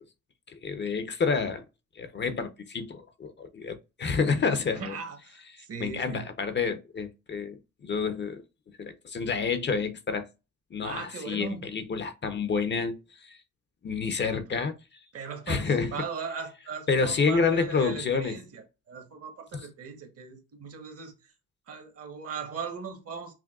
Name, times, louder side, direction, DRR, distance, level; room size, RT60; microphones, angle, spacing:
voice 1, 0.5-1.6 1.9-5.0 5.6-8.4 8.8-10.3 10.7-13.4 13.8-14.7 15.5-16.1 16.9-18.4 19.5-19.6, left 5 dB, 35° left, 0.6 m, -29 dB
voice 2, 4.7-6.3 10.8-11.7 14.2-14.4 15.1-15.7 15.9-21.1 21.7-23.3, right 6 dB, 50° right, 1.2 m, -38 dB
6.0 x 2.2 x 2.3 m
cardioid pair, 90°, 30 cm